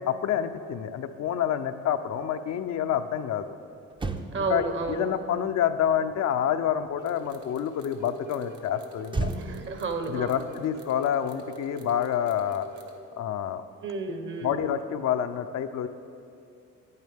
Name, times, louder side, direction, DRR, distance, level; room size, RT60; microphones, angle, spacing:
voice 1, 0.0-3.5 4.3-9.3 10.1-12.7 13.2-13.6 14.4-15.9, left 9 dB, 65° left, 9 dB, 0.5 m, -28 dB
Motor vehicle (road), 3.5-3.6 3.9-7.4 9.1-11.7 11.9-12.2, right 2 dB, 15° right, 0.5 m, -37 dB
voice 2, 4.3-5.0 9.4-10.4 13.8-14.6, right 3 dB, 40° right, 7 dB, 0.9 m, -31 dB
sound 1, 7.0-13.0, right 3 dB, 70° right, 1.0 m, -45 dB
10.0 x 9.4 x 3.5 m, 2.5 s
cardioid pair, 90°, 30 cm